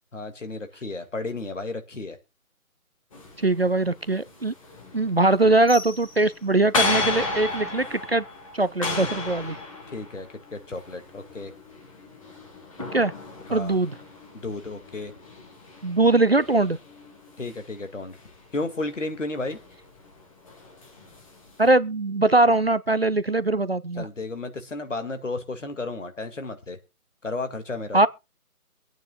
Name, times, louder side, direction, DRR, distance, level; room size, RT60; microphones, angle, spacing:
voice 1, 0.1-2.2 9.9-11.5 13.5-13.8 14.3-15.1 17.4-18.2 18.5-19.6 24.0-26.8 27.2-28.0, left 2 dB, 55° left, 2.3 m, -33 dB
sound 1, 3.1-21.7, left 3 dB, 25° left, 2.1 m, -35 dB
voice 2, 3.4-4.5 4.9-8.2 8.5-9.6 12.9-13.1 13.5-13.9 15.8-16.8 21.6-24.1 27.9-28.1, right 2 dB, 45° right, 0.5 m, -21 dB
24.0 x 9.2 x 2.4 m
figure-of-eight pair, 150°, 43 cm